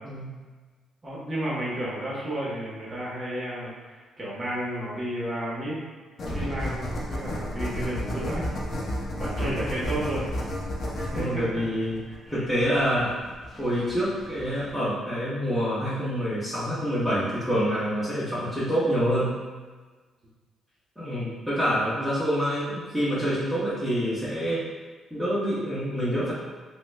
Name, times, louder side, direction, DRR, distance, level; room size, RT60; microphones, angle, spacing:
voice 1, 1.0-5.8 6.3-8.4 9.2-10.2 11.0-11.4 12.3-12.4, right 1 dB, 35° right, -7 dB, 1.1 m, -32 dB
sound 1, 6.2-14.7, equal, 50° left, 0.8 m, -32 dB
voice 2, 11.1-12.0 12.3-13.1 13.6-19.4 21.0-24.6 25.1-26.3, equal, ahead, -12 dB, 1.1 m, -26 dB
5.7 x 2.2 x 2.2 m, 1.4 s
cardioid pair, 90°, 0 cm